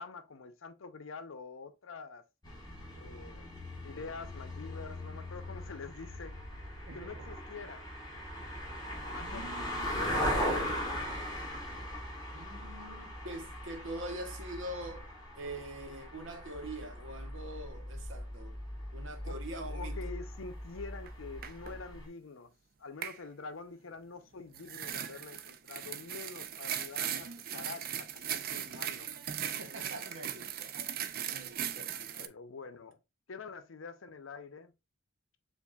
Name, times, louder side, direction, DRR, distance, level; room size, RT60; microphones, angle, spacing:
voice 1, 0.0-2.2 3.0-3.5 3.8-6.4 6.9-7.9 9.1-11.0 19.2-22.5 22.8-29.1 32.1-33.0 33.3-34.7, left 4 dB, 85° left, 0.7 m, -46 dB
sound 1, 2.4-22.1, equal, 20° left, 1.5 m, -39 dB
voice 2, 6.9-7.2 9.2-10.1 10.6-11.0 12.3-15.1 15.4-18.6 18.9-20.0 29.4-30.7 31.3-32.1, right 1 dB, 75° right, 1.0 m, -44 dB
sound 2, 21.1-21.2 21.4-21.8 23.0-23.2 24.5-32.3, right 9 dB, 45° right, 0.4 m, -38 dB
7.2 x 2.6 x 2.3 m
head